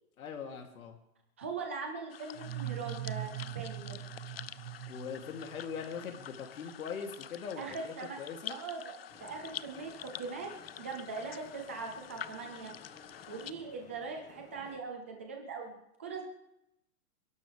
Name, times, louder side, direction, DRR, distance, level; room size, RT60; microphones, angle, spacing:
voice 1, 0.2-1.0 4.9-8.6, left 6 dB, 70° left, 3 dB, 3.0 m, -41 dB
voice 2, 1.4-4.0 7.6-8.2 8.5-8.9 9.2-10.5 10.8-12.7 13.3-16.2, right 4 dB, 10° right, 2 dB, 0.5 m, -41 dB
sound 1, 2.1-13.5, left 10 dB, 45° left, 0.4 m, -47 dB
sound 2, 2.3-6.0, right 13 dB, 85° right, 1.1 m, -41 dB
sound 3, 9.1-14.8, left 4 dB, 15° left, 1.3 m, -56 dB
29.0 x 11.5 x 3.4 m, 0.83 s
hypercardioid pair, 165°, 44 cm